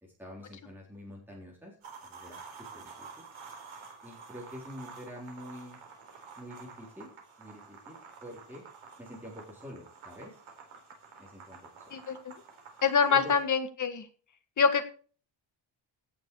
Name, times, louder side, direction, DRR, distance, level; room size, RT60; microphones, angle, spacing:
voice 1, 0.0-1.8 2.0-2.4 2.7-3.2 4.0-5.8 6.4-7.1 7.4-8.6 9.0-10.4 11.2-12.0 13.1-13.3, left 1 dB, 5° right, -3 dB, 3.9 m, -46 dB
sound 1, 1.8-13.4, right 5 dB, 90° right, 4.1 m, -50 dB
voice 2, 11.9-12.3 12.8-14.1 14.6-14.8, left 5 dB, 40° left, 7 dB, 1.6 m, -25 dB
17.0 x 7.1 x 4.8 m, 0.41 s
wide cardioid pair, 160°, 47 cm